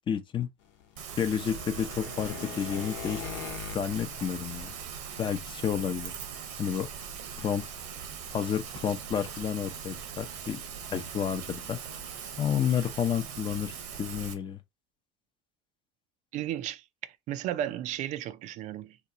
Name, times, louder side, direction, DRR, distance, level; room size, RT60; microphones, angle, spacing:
voice 1, 0.1-0.5 1.2-3.3 3.7-4.7 5.2-6.1 6.6-6.9 7.4-7.6 8.3-10.6 10.9-11.8 12.4-13.7 14.0-14.6, left 8 dB, 30° left, 0.6 m, -30 dB
sound 1, 0.7-5.8 6.2-6.3 6.7-6.9 7.2-7.3 7.7-7.8, left 8 dB, 85° left, 0.9 m, -42 dB
Rain, 1.0-14.3, right 7 dB, 75° right, 0.9 m, -41 dB
voice 2, 16.3-19.0, right 12 dB, 55° right, 0.4 m, -34 dB
2.9 x 2.3 x 3.9 m
supercardioid pair, 100°, 15 cm